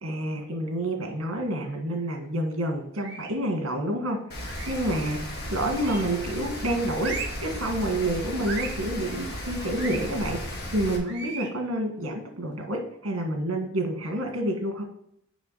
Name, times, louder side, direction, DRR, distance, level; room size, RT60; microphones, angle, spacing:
voice 1, 0.0-5.2 5.5-7.1 7.4-14.8, right 1 dB, 70° right, 3 dB, 1.7 m, -28 dB
sound 1, 3.0-3.4 4.5-4.9 5.8-6.3 7.0-7.5 8.4-8.8 9.8-10.0 11.1-11.6, right 5 dB, 55° right, 1.5 m, -36 dB
Rain, 4.3-11.0, left 1 dB, 50° left, 1.8 m, -35 dB
7.1 x 5.6 x 4.2 m, 0.73 s
head